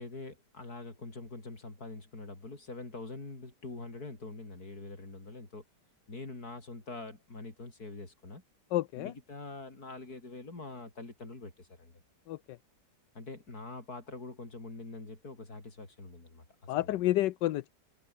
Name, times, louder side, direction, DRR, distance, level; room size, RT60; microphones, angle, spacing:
voice 1, 0.0-5.6 6.1-8.4 9.0-12.0 13.2-17.1, left 3 dB, 60° left, 5.3 m, -45 dB
voice 2, 8.7-9.1 12.3-12.4 16.7-17.7, left 15 dB, 90° left, 1.3 m, -29 dB
omnidirectional pair, 1.8 m